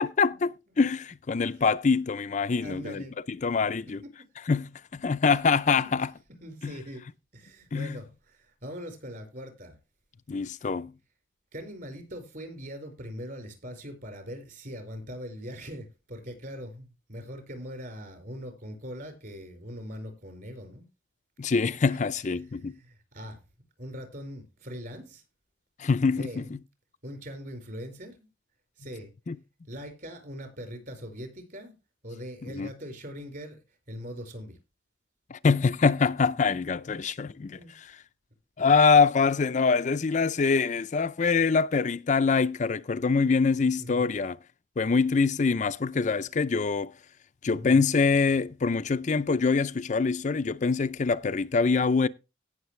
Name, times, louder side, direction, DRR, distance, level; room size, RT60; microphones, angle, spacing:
voice 1, 0.0-4.0 4.5-6.1 6.6-6.7 7.7-8.0 10.3-10.9 21.4-22.8 25.8-26.6 29.3-29.4 32.4-32.7 35.3-37.9 38.6-44.4 44.8-46.9 47.4-52.1, left 4 dB, 40° left, 0.4 m, -24 dB
voice 2, 2.5-3.1 4.0-4.1 5.7-5.9 6.4-7.0 7.3-9.8 10.5-10.6 11.5-20.9 21.7-22.0 22.4-23.4 23.8-25.2 26.1-26.5 27.0-28.3 28.8-29.1 29.7-31.7 32.0-33.6 33.9-34.6 37.6-37.7 43.8-44.1 47.5-47.8, equal, 50° right, 4.7 m, -41 dB
17.5 x 6.6 x 3.2 m
head